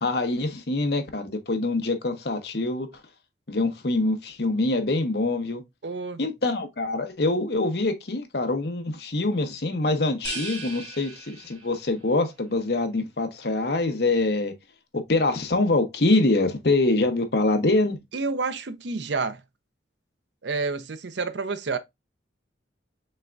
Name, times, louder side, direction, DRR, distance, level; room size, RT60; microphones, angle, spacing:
voice 1, 0.0-2.9 3.5-5.6 6.2-14.5 14.9-18.0, left 2 dB, 60° left, 0.9 m, -24 dB
voice 2, 5.8-6.2 18.1-19.4 20.4-21.8, right 4 dB, 70° right, 0.6 m, -29 dB
sound 1, 10.2-12.0, right 3 dB, 35° right, 1.9 m, -38 dB
5.5 x 3.5 x 2.5 m
head